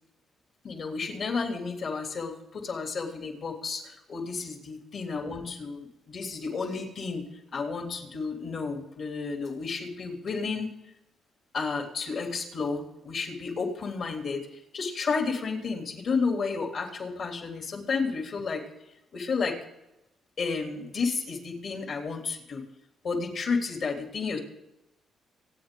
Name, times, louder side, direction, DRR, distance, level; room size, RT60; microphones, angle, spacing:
voice 1, 0.6-10.7 11.5-14.5 14.7-18.6 19.1-19.6 20.4-22.6 23.0-24.4, left 4 dB, 55° left, 3 dB, 3.2 m, -32 dB
26.0 x 8.9 x 3.9 m, 0.90 s
cardioid pair, 90°, 0 cm